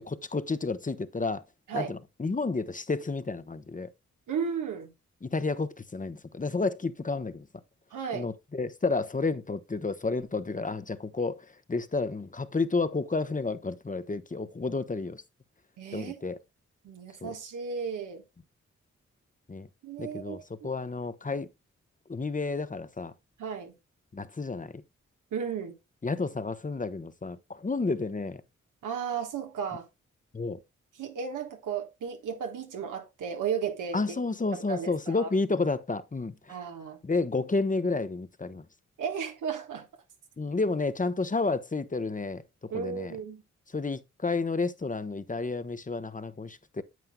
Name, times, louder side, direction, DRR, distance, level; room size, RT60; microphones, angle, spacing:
voice 1, 0.0-1.4 1.7-3.9 5.2-7.5 8.1-15.2 15.9-16.4 17.2-17.3 19.5-19.7 20.0-20.4 20.6-21.5 22.1-23.1 24.1-24.7 26.0-28.4 30.3-30.6 33.9-36.6 37.0-38.6 40.4-43.1 43.7-46.8, left 3 dB, 25° left, 0.9 m, -31 dB
voice 2, 4.3-4.9 7.9-8.3 15.8-16.2 16.8-18.2 19.8-20.7 23.4-23.7 25.3-25.8 28.8-29.9 31.0-34.2 34.5-35.3 36.5-37.0 39.0-39.9 42.7-43.4, right 7 dB, 90° right, 1.4 m, -34 dB
9.3 x 7.8 x 2.2 m
supercardioid pair, 45°, 30 cm